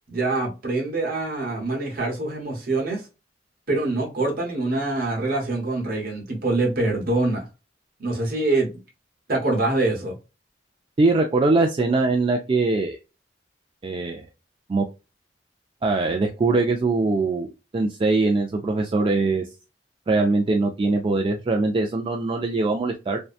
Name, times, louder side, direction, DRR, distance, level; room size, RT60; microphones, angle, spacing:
voice 1, 0.1-3.1 3.7-7.4 8.0-8.7 9.3-10.1, right 2 dB, 55° right, 1.0 m, -24 dB
voice 2, 11.0-13.0 13.8-14.3 14.7-14.9 15.8-19.4 20.1-23.2, right 3 dB, 30° right, 0.3 m, -22 dB
2.7 x 2.2 x 2.3 m
head